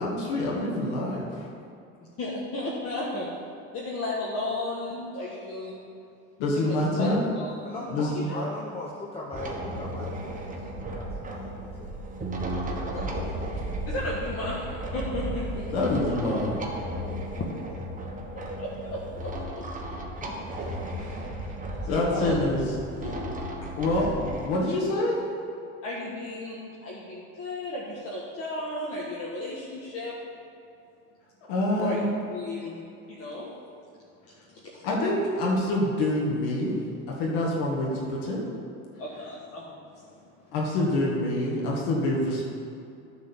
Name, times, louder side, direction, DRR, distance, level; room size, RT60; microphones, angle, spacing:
voice 1, 0.0-1.5 6.4-7.3 7.9-8.2 15.7-16.7 21.8-23.1 23.8-25.2 31.5-32.1 34.8-36.8 37.2-38.4 40.5-42.4, left 1 dB, 75° left, -3 dB, 1.8 m, -26 dB
voice 2, 0.7-1.1 2.2-3.3 3.7-5.8 6.5-8.5 12.7-13.3 13.6-15.7 17.3-17.7 18.3-19.3 20.2-20.7 21.0-21.2 21.8-22.4 23.9-24.0 25.8-30.2 31.8-32.0 32.3-32.8 33.1-33.5 34.3-34.8 39.0-40.3, left 1 dB, 40° left, -5 dB, 1.5 m, -35 dB
voice 3, 7.6-12.0, left 2 dB, 15° left, -3 dB, 1.0 m, -40 dB
sound 1, 9.3-24.5, right 1 dB, 20° right, 1.3 m, -34 dB
9.5 x 4.1 x 7.0 m, 2.5 s
supercardioid pair, 95°, 37 cm